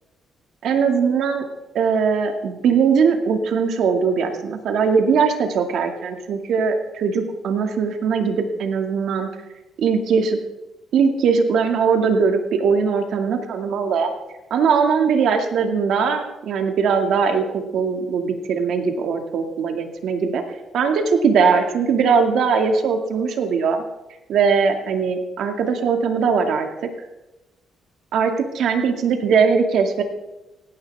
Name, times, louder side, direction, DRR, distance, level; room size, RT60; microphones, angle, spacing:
voice 1, 0.6-1.4 1.7-9.3 9.8-10.4 10.9-14.1 14.5-20.4 20.7-23.8 24.3-26.7 28.1-30.0, right 5 dB, 70° right, 4 dB, 2.2 m, -20 dB
17.5 x 16.5 x 3.6 m, 1.0 s
cardioid pair, 105°, 0 cm